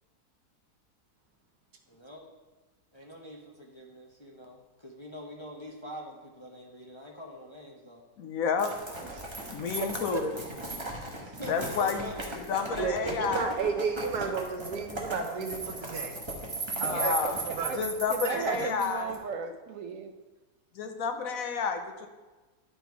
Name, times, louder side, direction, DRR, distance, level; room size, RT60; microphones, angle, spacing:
voice 1, 1.9-2.3 2.9-8.1 11.2-12.4 18.1-18.2, equal, 25° left, -2 dB, 0.7 m, -45 dB
voice 2, 8.2-8.7 9.5-10.3 11.5-12.0 12.5-13.6 16.7-17.4 17.8-19.1 19.4-19.5 20.7-22.1, left 6 dB, 70° left, 6 dB, 1.1 m, -30 dB
sound 1, 8.6-19.2, right 2 dB, 20° right, 1.2 m, -37 dB
voice 3, 9.0-10.2 16.9-17.8 18.1-20.1, right 7 dB, 65° right, 7 dB, 0.9 m, -36 dB
voice 4, 12.8-16.2 16.8-17.8 18.2-18.7, right 5 dB, 90° right, 5 dB, 1.5 m, -33 dB
11.0 x 4.1 x 4.6 m, 1.2 s
omnidirectional pair, 1.6 m